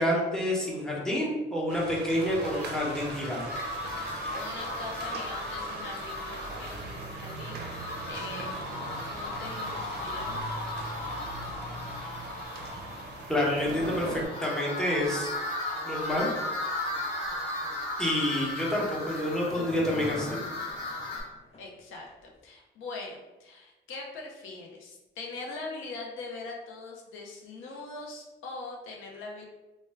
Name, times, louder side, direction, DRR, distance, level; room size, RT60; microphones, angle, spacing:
voice 1, 0.0-3.5 13.3-15.3 15.8-16.3 18.0-20.4, left 1 dB, 5° left, -5 dB, 0.8 m, -28 dB
sound 1, 1.7-14.3, right 3 dB, 55° right, 0.5 m, -40 dB
sound 2, 2.1-21.2, left 2 dB, 60° left, 1.2 m, -36 dB
voice 2, 4.3-8.5 9.0-10.4 10.8-11.0 15.0-15.2 21.6-29.4, left 3 dB, 85° left, 0 dB, 0.5 m, -42 dB
sound 3, 18.3-21.8 22.1-22.2, left 2 dB, 30° left, 0.5 m, -43 dB
2.1 x 2.1 x 3.3 m, 1.1 s
cardioid pair, 90°, 20 cm